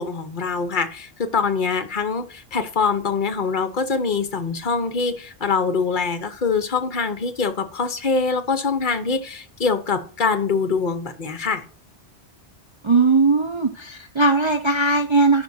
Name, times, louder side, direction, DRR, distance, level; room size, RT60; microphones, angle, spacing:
voice 1, 0.0-11.6, left 5 dB, 50° left, 9 dB, 1.1 m, -24 dB
voice 2, 12.8-15.4, right 3 dB, 35° right, 4 dB, 0.5 m, -19 dB
11.0 x 5.3 x 2.7 m, 0.42 s
omnidirectional pair, 1.1 m